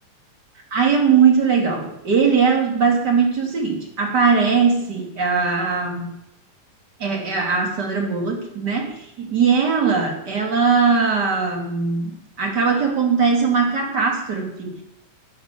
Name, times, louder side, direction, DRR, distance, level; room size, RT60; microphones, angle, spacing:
voice 1, 0.7-6.2 7.0-14.8, right 5 dB, 35° right, 2 dB, 3.1 m, -20 dB
12.0 x 12.0 x 6.9 m, 0.82 s
omnidirectional pair, 3.7 m